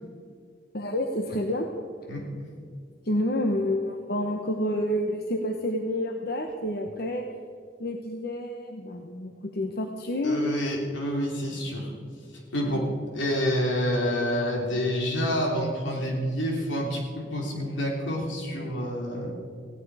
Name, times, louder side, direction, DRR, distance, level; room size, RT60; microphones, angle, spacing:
voice 1, 0.7-1.7 3.0-7.3 7.8-10.6, left 1 dB, 55° left, 4 dB, 1.0 m, -29 dB
voice 2, 2.1-2.5 10.2-11.9 12.5-19.3, equal, 80° left, 0 dB, 3.3 m, -28 dB
18.0 x 16.0 x 4.9 m, 2.2 s
head